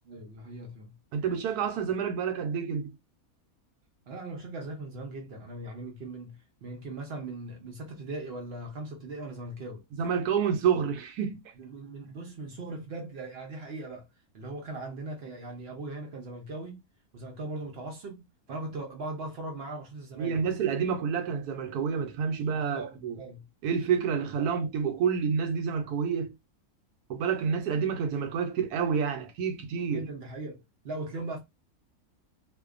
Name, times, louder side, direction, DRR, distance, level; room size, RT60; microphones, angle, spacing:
voice 1, 0.1-1.0 4.1-9.8 11.6-14.1 14.3-16.8 17.1-20.5 22.5-23.5 24.4-24.5 29.9-31.4, right 2 dB, 60° right, 0.7 m, -39 dB
voice 2, 1.1-3.0 10.0-11.4 20.1-23.1 23.6-26.3 27.1-30.1, right 7 dB, 80° right, 1.1 m, -28 dB
2.6 x 2.2 x 2.3 m
omnidirectional pair, 1.6 m